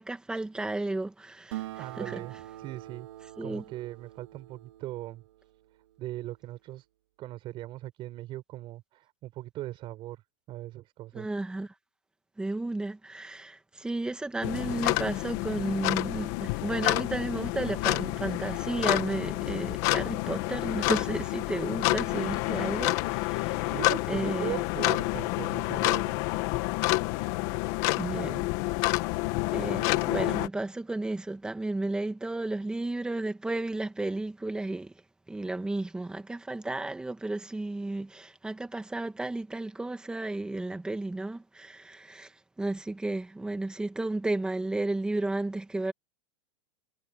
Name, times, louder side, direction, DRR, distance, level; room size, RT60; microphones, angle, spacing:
voice 1, 0.0-2.2 3.4-3.6 11.1-11.7 12.4-23.8 24.1-24.6 28.0-28.5 29.5-34.9 35.3-45.9, right 2 dB, 5° right, 2.1 m, -33 dB
Acoustic guitar, 1.5-6.4, right 15 dB, 70° right, 3.9 m, -45 dB
voice 2, 1.8-3.1 3.4-5.2 6.0-6.9 7.2-10.2 10.5-11.3 23.7-26.2, right 16 dB, 35° right, 5.8 m, -39 dB
sound 1, 14.4-30.5, left 21 dB, 45° left, 1.9 m, -29 dB
supercardioid pair, 155°, 15 cm